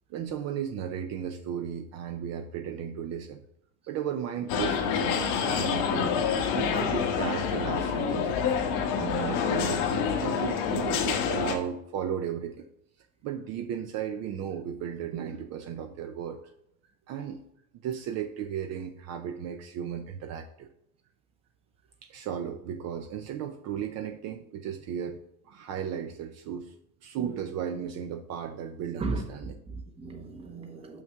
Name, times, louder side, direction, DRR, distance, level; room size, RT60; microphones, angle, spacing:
voice 1, 0.1-3.4 3.9-8.4 8.9-12.7 13.2-16.4 17.1-17.4 17.8-20.7 22.0-25.2 25.4-26.7 27.0-29.6, right 8 dB, 50° right, 0.6 m, -35 dB
sound 1, 4.5-11.5, left 7 dB, 90° left, 1.3 m, -27 dB
voice 2, 29.0-31.0, right 3 dB, 15° right, 0.8 m, -36 dB
6.5 x 6.0 x 3.5 m
cardioid pair, 170°, 35 cm